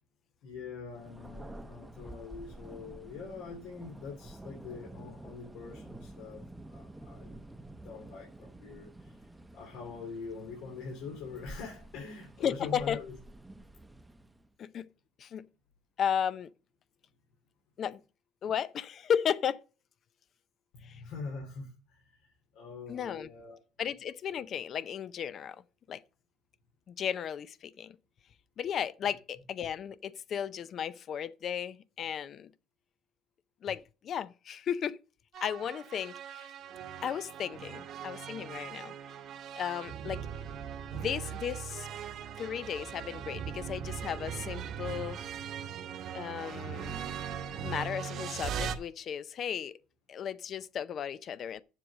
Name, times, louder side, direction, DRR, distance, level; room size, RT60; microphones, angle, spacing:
voice 1, 0.4-7.3 7.7-9.3 9.5-13.2 20.7-23.6, left 5 dB, 75° left, 2.7 m, -44 dB
Thunder, 0.9-14.5, right 1 dB, 5° right, 0.6 m, -49 dB
voice 2, 12.4-13.0 14.6-14.9 15.2-15.5 16.0-16.5 17.8-18.0 18.4-19.6 20.8-21.0 22.9-23.3 23.8-25.6 25.9-26.0 26.9-28.0 28.6-32.5 33.6-35.0 35.4-36.5 37.0-38.9 39.6-40.2 40.9-41.9 42.4-45.2 46.1-47.0 47.6-49.8 50.1-51.6, left 8 dB, 45° left, 0.5 m, -35 dB
sound 1, 35.3-48.8, right 8 dB, 55° right, 1.0 m, -40 dB
7.4 x 6.6 x 6.3 m
cardioid pair, 125°, 0 cm